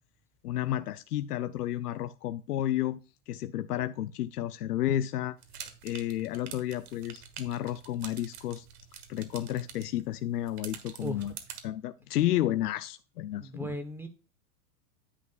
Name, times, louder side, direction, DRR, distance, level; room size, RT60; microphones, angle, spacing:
voice 1, 0.4-3.0 3.3-5.4 5.8-8.7 9.1-11.3 11.6-13.7, left 13 dB, 90° left, 0.6 m, -31 dB
sound 1, 5.4-11.6, right 8 dB, 75° right, 1.6 m, -47 dB
voice 2, 13.4-14.1, equal, 5° right, 1.1 m, -37 dB
9.8 x 8.1 x 2.4 m
hypercardioid pair, 120°, 45 cm